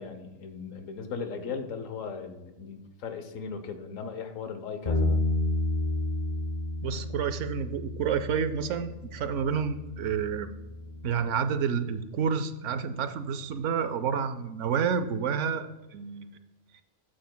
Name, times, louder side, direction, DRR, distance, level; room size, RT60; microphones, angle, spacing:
voice 1, 0.0-5.3, left 5 dB, 75° left, 8 dB, 1.3 m, -37 dB
Bass guitar, 4.9-11.1, left 1 dB, 40° left, 1.2 m, -31 dB
voice 2, 6.8-10.5 11.0-16.4 16.7-16.8, right 7 dB, 70° right, 10 dB, 0.9 m, -29 dB
13.0 x 7.7 x 2.2 m, 1.1 s
omnidirectional pair, 1.4 m